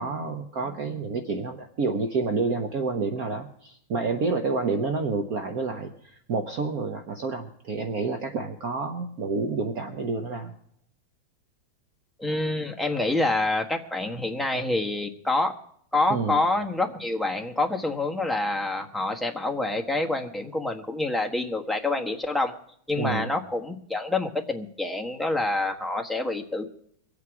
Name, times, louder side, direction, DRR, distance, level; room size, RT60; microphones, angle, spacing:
voice 1, 0.0-10.5 16.1-16.4 23.0-23.3, right 4 dB, 55° right, 5 dB, 1.2 m, -29 dB
voice 2, 12.2-15.5 15.9-22.5 22.9-26.7, left 2 dB, ahead, 1 dB, 0.9 m, -27 dB
23.5 x 8.5 x 4.8 m, 0.67 s
omnidirectional pair, 2.2 m